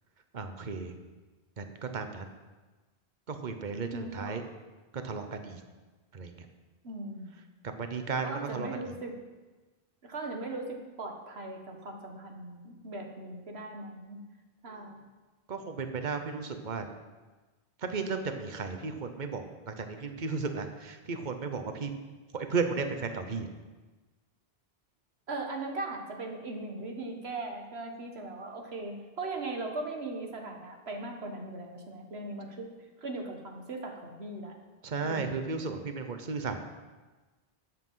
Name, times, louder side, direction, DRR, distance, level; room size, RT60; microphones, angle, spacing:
voice 1, 0.3-0.9 1.6-2.3 3.3-4.4 4.9-5.6 6.1-6.3 7.6-8.7 14.7-14.8 15.5-16.8 17.8-21.9 22.3-23.5 34.8-36.6, right 4 dB, 50° right, 7 dB, 1.1 m, -34 dB
voice 2, 3.9-4.4 6.8-7.4 8.2-9.2 10.0-14.2 14.6-15.0 25.3-32.7 33.0-34.6 35.0-35.4, right 2 dB, 85° right, 2 dB, 1.8 m, -39 dB
12.5 x 8.6 x 5.6 m, 1.3 s
omnidirectional pair, 1.0 m